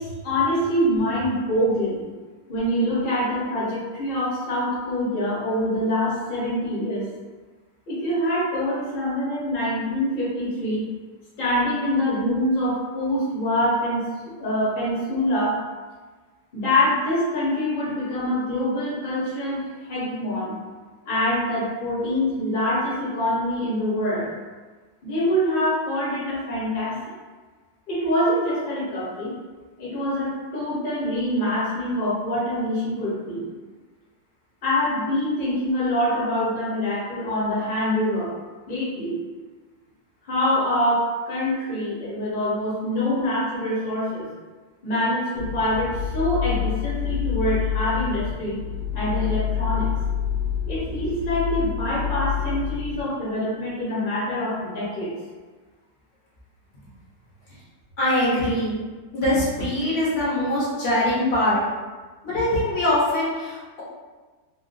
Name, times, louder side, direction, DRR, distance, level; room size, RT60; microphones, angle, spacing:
voice 1, 0.0-2.0 2.5-7.1 7.9-10.9 11.4-14.0 14.4-15.6 16.5-20.5 21.0-24.3 25.0-26.9 27.9-29.3 29.8-33.5 34.6-38.3 38.7-39.2 40.2-44.3 44.8-48.6 48.9-49.9 50.7-55.1, left 1 dB, 35° left, -8 dB, 0.9 m, -25 dB
sound 1, 45.3-53.0, left 8 dB, 70° right, 1.0 m, -27 dB
voice 2, 58.0-58.8 59.1-61.6 62.2-63.8, left 1 dB, 60° left, -8 dB, 1.4 m, -22 dB
3.6 x 2.3 x 2.6 m, 1.3 s
omnidirectional pair, 2.0 m